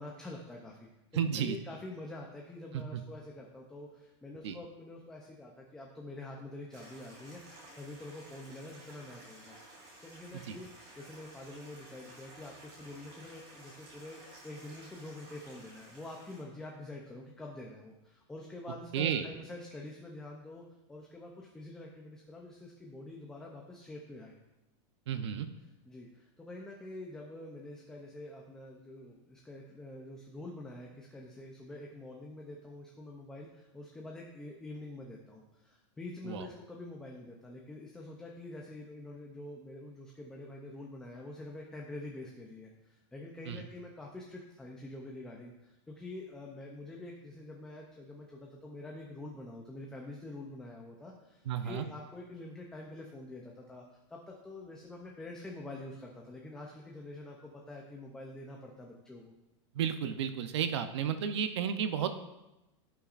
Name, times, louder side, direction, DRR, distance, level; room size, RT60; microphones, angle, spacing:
voice 1, 0.0-9.6 10.0-24.3 25.9-59.3, left 2 dB, 5° left, -1 dB, 0.5 m, -46 dB
voice 2, 1.1-1.6 2.7-3.0 4.4-4.6 10.5-10.6 18.9-19.3 25.1-25.5 36.2-36.5 43.5-43.6 51.5-51.9 59.7-62.1, right 8 dB, 65° right, 9 dB, 0.7 m, -32 dB
Stream, 6.7-16.4, right 1 dB, 30° right, 2.8 m, -54 dB
15.5 x 5.8 x 2.5 m, 0.95 s
supercardioid pair, 175°, 16 cm